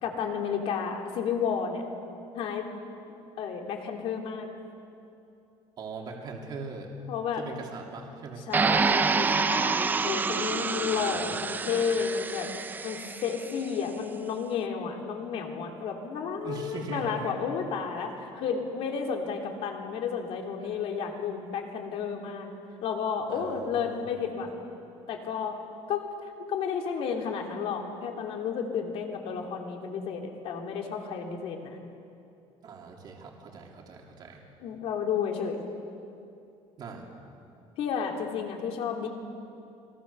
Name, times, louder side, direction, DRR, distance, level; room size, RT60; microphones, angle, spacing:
voice 1, 0.0-1.8 2.3-2.7 3.4-4.5 7.1-7.4 8.5-12.5 12.8-22.5 22.8-24.5 25.1-25.6 25.9-26.0 26.5-31.8 34.6-35.6 37.8-39.1, left 6 dB, 60° left, 2 dB, 3.2 m, -32 dB
voice 2, 5.8-6.9 7.4-8.5 10.6-11.3 16.4-17.3 20.6-20.7 23.3-24.1 32.6-34.4 36.8-37.1, right 4 dB, 40° right, 0 dB, 3.0 m, -41 dB
sound 1, 8.5-13.5, right 4 dB, 15° right, 0.5 m, -27 dB
28.5 x 22.0 x 6.9 m, 2.7 s
cardioid pair, 175°, 11 cm